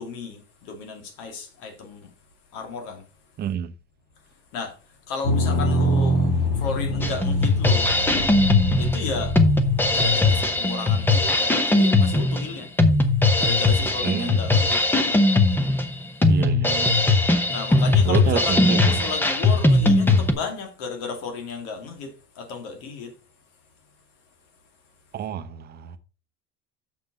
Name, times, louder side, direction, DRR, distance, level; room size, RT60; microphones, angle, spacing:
voice 1, 0.0-2.1 2.5-3.0 4.5-4.8 5.1-6.3 6.6-7.9 8.8-9.4 9.9-12.7 13.4-14.8 17.5-23.1, left 4 dB, 75° left, 2.4 m, -33 dB
voice 2, 3.4-3.7 14.0-14.6 16.3-17.0 18.0-19.0 25.1-26.0, right 9 dB, 30° right, 0.7 m, -29 dB
sound 1, 5.2-10.1, left 1 dB, 45° left, 2.4 m, -24 dB
Drum kit, 7.0-20.3, left 2 dB, 5° left, 0.7 m, -20 dB
6.9 x 5.9 x 5.1 m
cardioid pair, 165°, 32 cm